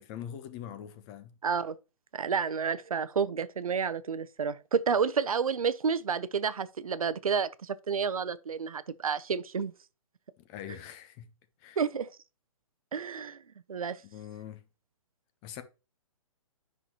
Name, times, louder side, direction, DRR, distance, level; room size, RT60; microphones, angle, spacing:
voice 1, 0.0-1.3 10.5-11.3 11.6-11.8 14.0-14.6 15.4-15.6, left 10 dB, 25° left, 0.9 m, -43 dB
voice 2, 1.4-1.8 2.1-9.7 11.8-12.1 12.9-13.4 13.7-14.0, right 6 dB, 85° right, 0.7 m, -30 dB
9.3 x 5.8 x 2.9 m
hypercardioid pair, 140°, 18 cm